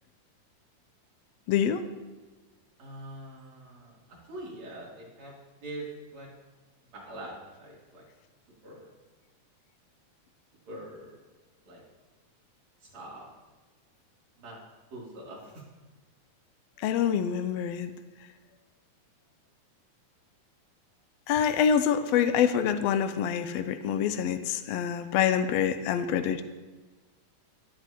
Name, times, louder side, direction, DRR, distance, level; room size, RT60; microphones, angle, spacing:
voice 1, 1.5-1.8 16.8-17.9 21.3-26.4, left 8 dB, 90° left, 9 dB, 1.5 m, -26 dB
voice 2, 2.8-5.3 5.6-5.9 6.1-6.3 6.9-8.0 8.6-8.9 10.7-11.1 11.6-11.8 12.8-13.3 14.4-14.6 14.9-15.6, right 1 dB, 55° right, -5 dB, 4.2 m, -43 dB
18.0 x 9.9 x 3.0 m, 1.2 s
omnidirectional pair, 3.6 m